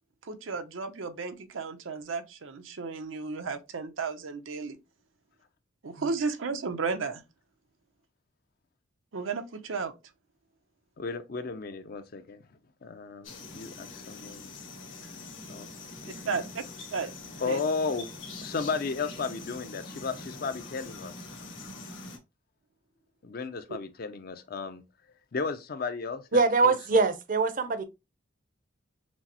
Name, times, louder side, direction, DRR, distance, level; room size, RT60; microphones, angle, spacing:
voice 1, 0.2-4.8 5.8-7.2 9.1-9.9 16.2-16.6 16.9-17.1 17.5-17.6, right 4 dB, 85° right, 0.6 m, -33 dB
voice 2, 11.0-14.5 15.5-16.4 17.3-18.1 18.4-21.3 23.2-24.8 25.3-26.8, left 4 dB, 50° left, 0.5 m, -34 dB
sound 1, 13.2-22.2, left 2 dB, 80° left, 1.5 m, -44 dB
voice 3, 26.3-27.8, right 3 dB, 45° right, 0.6 m, -23 dB
6.0 x 2.0 x 2.8 m
head